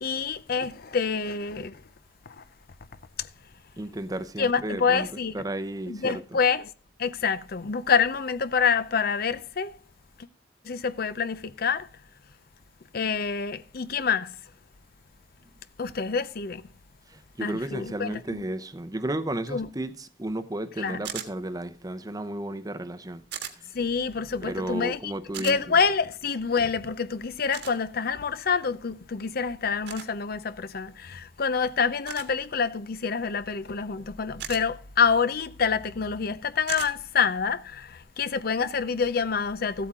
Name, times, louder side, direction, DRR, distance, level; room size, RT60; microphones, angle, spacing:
voice 1, 0.0-1.8 2.3-2.4 3.2-3.3 4.4-5.4 5.9-6.7 7.0-9.7 10.6-11.9 12.9-14.4 15.8-16.6 17.4-18.4 19.5-19.7 20.8-21.0 23.7-25.1 25.4-39.9, left 5 dB, 55° left, 0.7 m, -27 dB
voice 2, 3.8-5.1 5.3-6.4 17.1-23.2 23.6-23.8 24.4-25.8, right 1 dB, 20° right, 0.8 m, -33 dB
sound 1, 21.0-21.3 23.3-23.5 25.3-25.6 27.5-27.7 29.8-30.1 32.1-32.3 34.4-34.6 36.7-36.9, right 8 dB, 70° right, 1.6 m, -36 dB
14.5 x 8.4 x 3.7 m
head